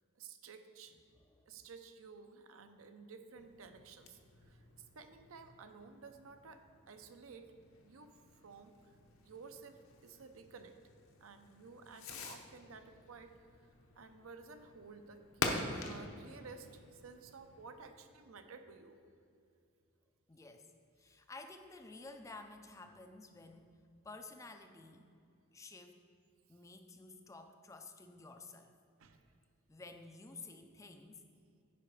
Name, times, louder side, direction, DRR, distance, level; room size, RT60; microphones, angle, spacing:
voice 1, 0.1-0.9 1.5-4.6 4.9-7.4 7.8-8.2 8.4-8.9 9.2-10.8 11.2-13.7 13.9-19.0 29.0-29.2, right 4 dB, 70° right, 7 dB, 0.6 m, -54 dB
Fireworks, 3.3-17.9, left 3 dB, 70° left, 0.8 m, -47 dB
voice 2, 20.3-20.7 21.0-23.7 24.0-25.1 25.5-26.0 26.5-28.7 29.7-31.2, left 3 dB, 15° left, 6 dB, 0.3 m, -52 dB
10.0 x 4.8 x 4.8 m, 2.5 s
head